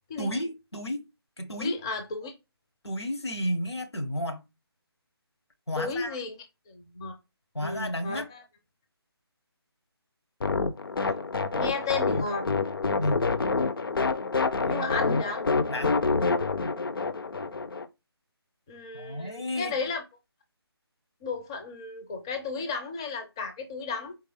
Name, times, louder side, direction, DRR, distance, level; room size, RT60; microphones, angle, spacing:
voice 1, 0.2-1.0 1.4-1.8 2.8-4.4 5.7-6.1 7.5-8.3 13.0-13.3 14.6-15.0 15.7-16.0 18.9-19.7, equal, 80° left, 1.3 m, -32 dB
voice 2, 1.6-2.3 5.8-6.4 6.7-7.1 7.6-8.4 11.5-12.5 14.6-15.4 18.7-20.0 21.2-24.1, left 4 dB, 10° left, 0.4 m, -33 dB
sound 1, 10.4-17.9, left 4 dB, 60° left, 0.6 m, -27 dB
4.5 x 3.2 x 3.3 m
figure-of-eight pair, 155°, 14 cm